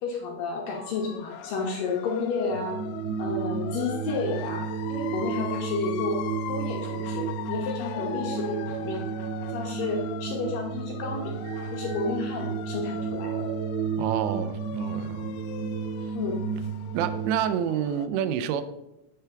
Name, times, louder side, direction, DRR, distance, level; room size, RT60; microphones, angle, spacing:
voice 1, 0.0-2.8 3.2-6.2 6.5-9.0 9.5-11.3 11.7-13.5 16.1-16.4, left 4 dB, 70° left, 0 dB, 2.2 m, -31 dB
sound 1, 0.7-18.1, left 12 dB, 85° left, 2.8 m, -41 dB
sound 2, 2.5-17.3, right 6 dB, 65° right, 2.4 m, -32 dB
voice 2, 14.0-15.3 16.9-18.6, right 9 dB, 85° right, 11 dB, 2.9 m, -28 dB
10.0 x 4.5 x 5.8 m, 0.91 s
omnidirectional pair, 5.0 m